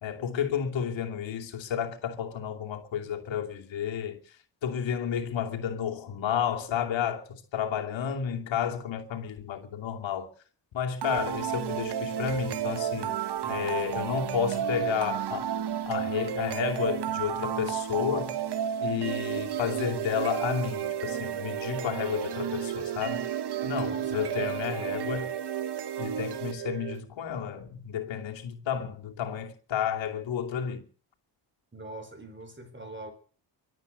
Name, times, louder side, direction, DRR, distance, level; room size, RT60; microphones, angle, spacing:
voice 1, 0.0-10.3 10.7-15.5 15.9-18.4 18.8-23.2 23.6-25.3 26.0-30.8, left 8 dB, 90° left, 2.8 m, -31 dB
sound 1, 11.0-27.0, right 9 dB, 65° right, 1.2 m, -32 dB
voice 2, 23.8-25.3 31.7-33.1, right 2 dB, 25° right, 4.7 m, -44 dB
24.0 x 8.7 x 6.7 m
cardioid pair, 90°, 44 cm